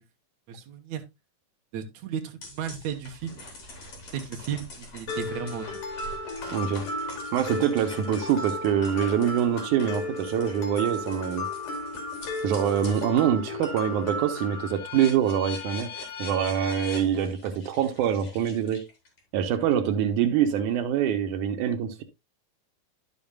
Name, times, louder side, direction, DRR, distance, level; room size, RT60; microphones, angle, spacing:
voice 1, 0.5-1.0 1.7-3.4 4.1-5.8, right 8 dB, 70° right, 2.4 m, -34 dB
sound 1, 2.4-13.1 13.5-19.2, left 4 dB, 60° left, 4.2 m, -43 dB
Mallet percussion, 5.1-14.7, left 2 dB, 75° left, 3.5 m, -34 dB
voice 2, 6.5-6.9 7.3-11.5 12.4-15.9 16.2-18.8 19.3-22.0, right 9 dB, 90° right, 2.4 m, -25 dB
11.5 x 7.0 x 2.3 m
omnidirectional pair, 3.5 m